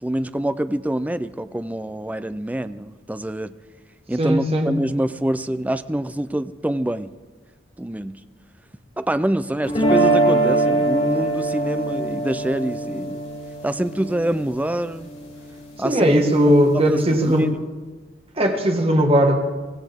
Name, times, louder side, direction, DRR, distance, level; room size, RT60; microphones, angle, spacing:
voice 1, 0.0-3.5 4.1-7.1 7.8-8.2 9.0-13.2 13.6-15.1 15.8-16.2 16.9-17.6, right 1 dB, 10° right, 12 dB, 0.4 m, -26 dB
voice 2, 4.2-4.7 15.8-17.4 18.4-19.4, equal, 30° right, 3 dB, 1.7 m, -18 dB
sound 1, 9.7-15.8, right 2 dB, 35° left, 4.7 m, -23 dB
24.0 x 15.5 x 3.6 m, 1.3 s
head